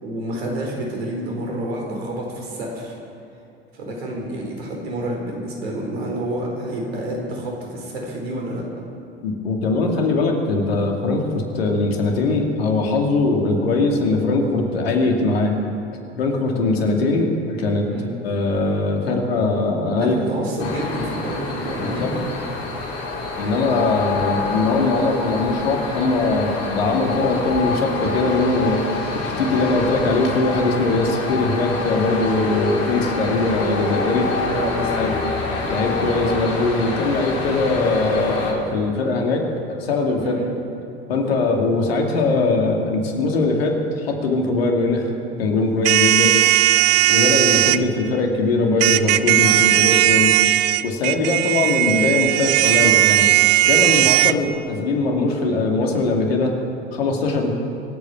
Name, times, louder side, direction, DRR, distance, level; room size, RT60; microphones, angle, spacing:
voice 1, 0.0-3.0 3.7-8.7 17.9-18.1 19.9-22.3 34.5-35.3 40.2-40.5, right 1 dB, 80° right, 0 dB, 4.2 m, -28 dB
voice 2, 9.2-15.5 16.2-17.9 18.2-20.2 20.6-20.7 21.8-22.1 23.4-28.8 29.1-34.5 35.0-35.1 35.7-40.4 41.1-45.1 45.4-46.4 47.0-50.4 50.8-53.3 53.7-56.5 56.9-57.5, left 3 dB, 80° left, 1 dB, 2.5 m, -21 dB
sound 1, 20.6-38.5, left 3 dB, 50° left, 4.0 m, -27 dB
sound 2, 45.8-47.8 48.8-54.3, right 16 dB, 55° right, 0.6 m, -17 dB
25.5 x 8.7 x 6.1 m, 2.8 s
hypercardioid pair, 75°, 31 cm